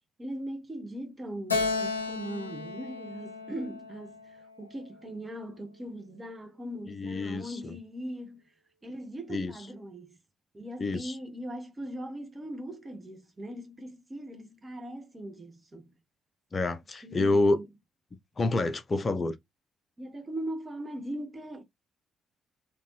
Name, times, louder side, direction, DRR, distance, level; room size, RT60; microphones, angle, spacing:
voice 1, 0.2-8.4 8.8-10.2 10.5-15.9 17.0-17.6 20.0-21.6, right 1 dB, 25° right, 1.6 m, -40 dB
Keyboard (musical), 1.5-5.0, left 4 dB, 90° left, 0.6 m, -34 dB
voice 2, 6.9-7.8 9.3-9.5 10.8-11.2 16.5-17.6 18.4-19.4, left 2 dB, 35° left, 0.8 m, -28 dB
3.8 x 3.5 x 3.2 m
figure-of-eight pair, 45°, 0 cm